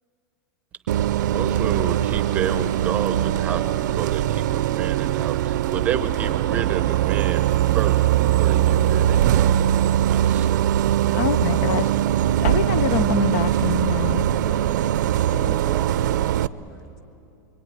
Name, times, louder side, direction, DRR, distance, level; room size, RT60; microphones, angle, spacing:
Bus, 0.9-16.5, right 12 dB, 70° right, 0.6 m, -21 dB
voice 1, 1.3-7.5 7.7-8.1 8.4-9.6 10.1-10.7, right 8 dB, 15° right, 9 dB, 0.8 m, -30 dB
voice 2, 11.1-11.9 12.4-14.2, left 9 dB, 50° left, 15 dB, 0.6 m, -25 dB
voice 3, 14.3-17.0, equal, 5° left, 4 dB, 1.5 m, -41 dB
26.0 x 24.0 x 9.6 m, 2.8 s
supercardioid pair, 175°, 10 cm